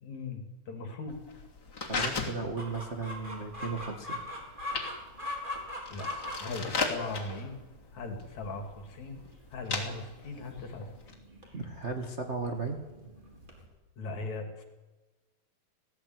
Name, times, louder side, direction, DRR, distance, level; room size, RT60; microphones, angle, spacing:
voice 1, 0.0-1.2 5.9-6.1 6.4-7.6 7.9-9.2 9.5-10.9 14.0-14.6, left 3 dB, 50° left, 5 dB, 3.7 m, -39 dB
sound 1, 1.1-11.1, left 4 dB, 30° left, 3.3 m, -38 dB
voice 2, 1.9-4.2 11.5-12.8, right 4 dB, 50° right, 3 dB, 0.8 m, -35 dB
Chicken rooster, 2.6-13.7, left 1 dB, 15° right, 3.6 m, -42 dB
19.0 x 16.5 x 9.5 m, 1.2 s
omnidirectional pair, 4.3 m